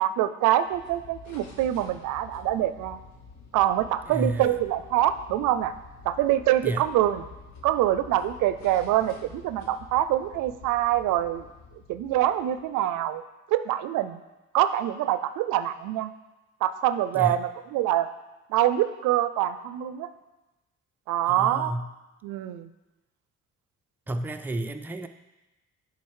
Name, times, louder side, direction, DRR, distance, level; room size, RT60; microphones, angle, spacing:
voice 1, 0.0-3.0 3.5-5.7 6.0-7.2 7.6-11.5 11.9-13.2 13.5-14.2 14.5-16.1 16.6-18.1 18.5-20.1 21.1-21.7 22.2-22.7, right 12 dB, 90° right, 12 dB, 0.5 m, -25 dB
sound 1, 0.6-12.8, left 4 dB, 65° left, 1.1 m, -48 dB
voice 2, 4.0-4.6 6.6-6.9 17.1-17.5 21.3-21.9 24.1-25.1, right 1 dB, 5° right, 6 dB, 0.4 m, -31 dB
8.5 x 3.8 x 4.7 m, 1.1 s
cardioid pair, 90°, 30 cm